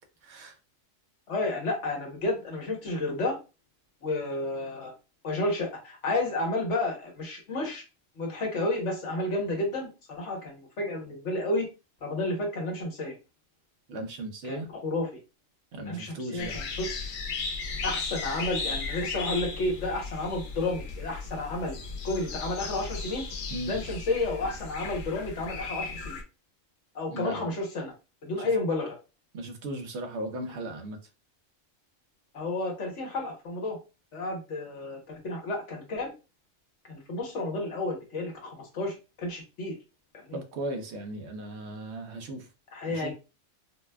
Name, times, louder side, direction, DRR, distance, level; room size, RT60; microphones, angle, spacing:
voice 1, 0.2-0.6 13.9-14.7 15.7-16.6 23.5-23.7 27.1-27.5 28.4-28.5 29.3-31.0 40.3-42.5 42.9-43.1, right 1 dB, 65° right, 0.9 m, -37 dB
voice 2, 1.3-3.4 4.0-4.9 5.2-7.8 8.2-11.7 12.0-13.1 14.5-14.6 14.8-15.1 15.9-16.9 17.8-21.7 22.0-23.3 23.7-26.2 26.9-27.9 28.2-28.9 32.3-33.8 34.1-36.1 36.9-39.8 40.2-40.4 42.7-43.1, left 2 dB, 65° left, 1.4 m, -31 dB
sound 1, 16.4-26.2, left 4 dB, 85° left, 1.2 m, -36 dB
4.1 x 2.2 x 2.2 m
omnidirectional pair, 1.4 m